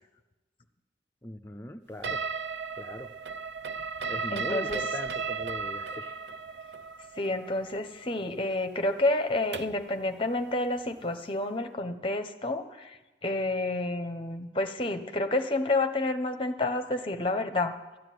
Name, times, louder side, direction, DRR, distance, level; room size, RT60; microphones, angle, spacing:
voice 1, 1.2-2.2 2.8-3.1 4.1-6.2, left 1 dB, 15° left, 7 dB, 0.5 m, -40 dB
sound 1, 2.0-9.9, right 5 dB, 75° right, 0.5 m, -35 dB
voice 2, 4.3-4.8 7.2-12.9 13.2-17.8, left 2 dB, 30° left, 8 dB, 1.0 m, -29 dB
13.5 x 10.5 x 9.4 m, 1.1 s
head